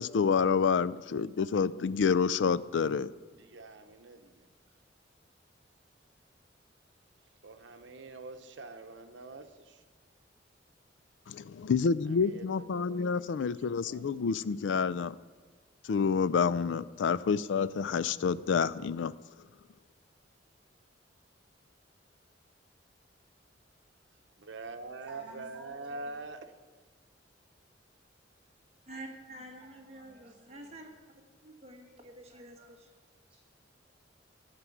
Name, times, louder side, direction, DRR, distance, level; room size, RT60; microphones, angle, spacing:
voice 1, 0.0-3.1 11.3-15.2 15.8-19.2, left 6 dB, 80° left, 16 dB, 0.4 m, -28 dB
voice 2, 3.3-4.5 7.4-9.8 12.1-14.3 24.4-26.5, right 3 dB, 80° right, 8 dB, 0.9 m, -45 dB
voice 3, 24.9-26.1 28.9-30.7 33.3-33.4, right 1 dB, 5° right, -8 dB, 3.6 m, -55 dB
voice 4, 28.9-30.9 31.4-32.9, right 1 dB, 35° right, 2 dB, 1.5 m, -48 dB
13.0 x 6.1 x 8.5 m, 1.4 s
head